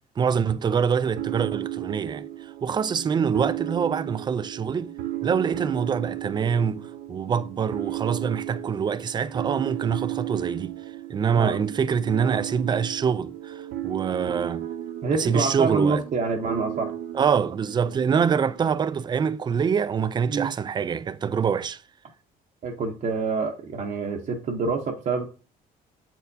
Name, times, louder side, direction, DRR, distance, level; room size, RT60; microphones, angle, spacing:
voice 1, 0.2-2.2 2.6-4.9 5.2-10.7 11.1-14.7 15.1-16.0 17.1-21.8, right 6 dB, 25° right, 0.4 m, -25 dB
sound 1, 1.2-18.6, right 13 dB, 80° right, 0.6 m, -34 dB
voice 2, 15.0-16.9 20.3-20.5 22.6-25.2, right 4 dB, 50° right, 0.8 m, -26 dB
8.0 x 4.4 x 2.7 m
cardioid pair, 110°, 17 cm